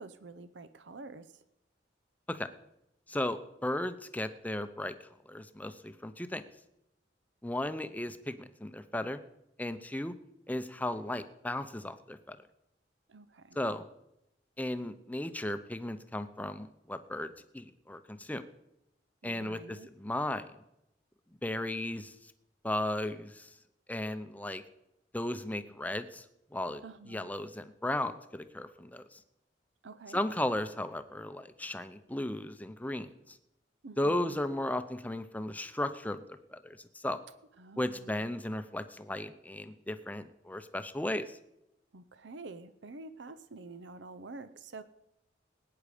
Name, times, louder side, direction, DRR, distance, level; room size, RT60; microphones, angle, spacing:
voice 1, 0.0-1.4 13.1-13.6 19.2-19.9 26.8-27.3 29.8-30.2 33.8-34.4 37.6-38.3 41.9-44.8, right 3 dB, 75° right, 13 dB, 0.7 m, -48 dB
voice 2, 3.1-4.9 5.3-6.4 7.4-9.2 9.6-10.1 10.5-12.4 13.6-13.8 14.6-18.4 19.2-20.5 21.4-22.1 22.6-23.5 23.9-24.6 25.1-26.2 26.5-26.8 27.1-29.2 30.1-33.4 34.0-37.2 37.8-41.4, left 1 dB, 10° left, 11 dB, 0.7 m, -35 dB
19.0 x 9.6 x 5.1 m, 0.84 s
head